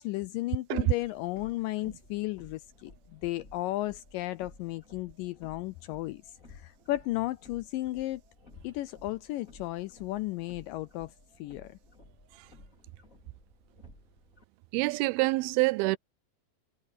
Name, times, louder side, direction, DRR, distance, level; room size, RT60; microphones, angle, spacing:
voice 1, 0.0-6.2 6.5-8.2 8.6-11.8, left 17 dB, 80° left, 2.0 m, -34 dB
sound 1, 0.8-14.4, left 2 dB, 20° left, 4.4 m, -57 dB
voice 2, 14.7-16.0, right 22 dB, 85° right, 2.4 m, -26 dB
omnidirectional pair, 4.4 m